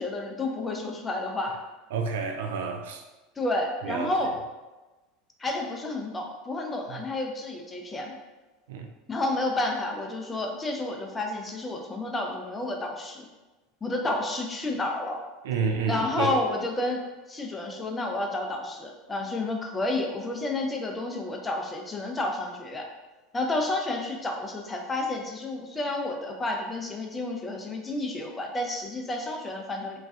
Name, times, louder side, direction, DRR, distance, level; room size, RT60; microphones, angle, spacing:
voice 1, 0.0-1.5 3.4-4.3 5.4-8.1 9.1-13.3 13.8-15.2 15.9-17.0 17.3-22.9 23.3-30.0, left 2 dB, 20° left, 2 dB, 0.5 m, -30 dB
voice 2, 1.9-3.0 3.8-4.1 6.9-7.0 8.7-8.9 15.4-16.3, right 5 dB, 65° right, 5 dB, 0.3 m, -29 dB
3.0 x 2.3 x 2.6 m, 1.1 s
figure-of-eight pair, 75°, 0 cm